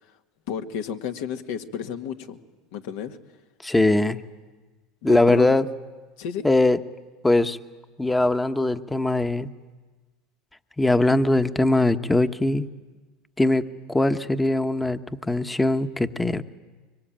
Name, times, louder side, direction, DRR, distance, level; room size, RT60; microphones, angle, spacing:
voice 1, 0.5-2.4 2.7-3.2 5.0-5.5 6.2-6.5, left 8 dB, 75° left, 5 dB, 1.9 m, -31 dB
voice 2, 3.6-4.2 5.0-5.7 6.4-6.8 7.2-7.6 8.0-9.5 10.8-12.7 13.4-13.6 13.9-16.4, left 2 dB, 10° left, 9 dB, 1.1 m, -21 dB
24.5 x 24.0 x 8.9 m, 1.3 s
supercardioid pair, 100°, 0 cm